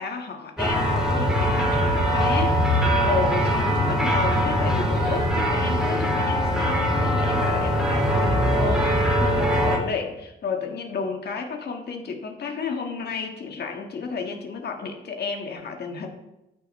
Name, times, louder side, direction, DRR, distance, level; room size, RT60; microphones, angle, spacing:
voice 1, 0.0-16.1, left 5 dB, 55° left, 3 dB, 1.7 m, -32 dB
sound 1, 0.6-9.8, equal, 5° right, 2.1 m, -22 dB
13.5 x 6.2 x 3.2 m, 0.94 s
cardioid pair, 90°, 20 cm